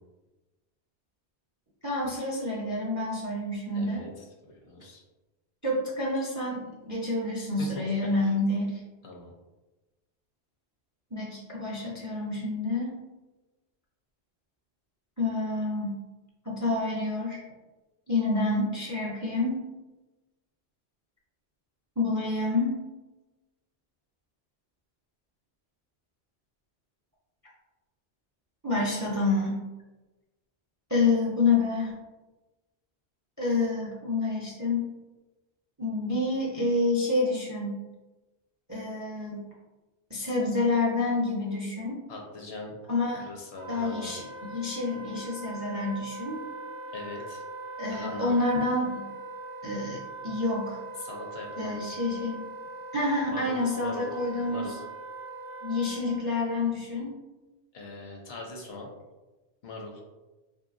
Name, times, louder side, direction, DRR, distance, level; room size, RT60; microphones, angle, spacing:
voice 1, 1.8-4.0 5.6-8.8 11.1-12.9 15.2-16.0 16.4-17.4 18.1-19.6 22.0-22.8 28.6-29.6 30.9-31.9 33.4-34.9 35.8-37.8 38.7-39.4 40.1-42.0 42.9-43.3 43.7-46.4 47.8-49.0 49.6-50.8 51.6-52.5 52.9-54.8 55.6-57.1, left 2 dB, 25° right, -4 dB, 0.4 m, -28 dB
voice 2, 3.7-4.1 4.5-5.0 7.6-7.8 8.2-8.3 9.0-9.3 42.1-42.8 43.2-44.1 46.9-47.4 47.9-48.3 51.0-51.8 53.3-54.1 54.5-54.8 57.7-58.9 59.6-60.0, left 2 dB, 70° left, 0 dB, 0.9 m, -40 dB
Wind instrument woodwind instrument, 43.6-56.2, right 3 dB, 30° left, 0.5 m, -41 dB
3.2 x 2.7 x 2.5 m, 1.1 s
omnidirectional pair, 1.1 m